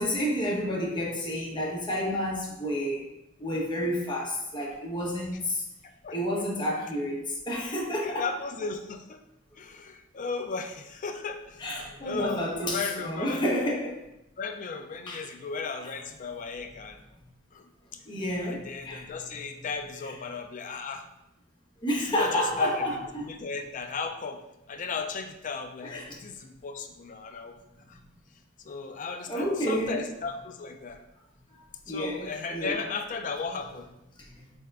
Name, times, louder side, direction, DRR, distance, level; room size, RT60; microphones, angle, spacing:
voice 1, 0.0-3.0 3.4-5.6 6.1-8.2 11.6-14.0 15.1-15.2 15.8-15.9 18.1-19.4 20.0-20.1 21.8-23.3 25.8-26.2 29.3-30.1 31.9-32.8 34.2-34.3, equal, 25° left, -3 dB, 0.9 m, -30 dB
voice 2, 8.0-9.2 9.6-13.4 14.4-17.0 17.5-17.7 18.4-21.1 22.1-24.4 24.7-27.6 27.9-28.0 28.6-31.0 31.9-33.9, left 4 dB, 40° left, 6 dB, 0.4 m, -36 dB
3.7 x 3.5 x 3.3 m, 0.87 s
head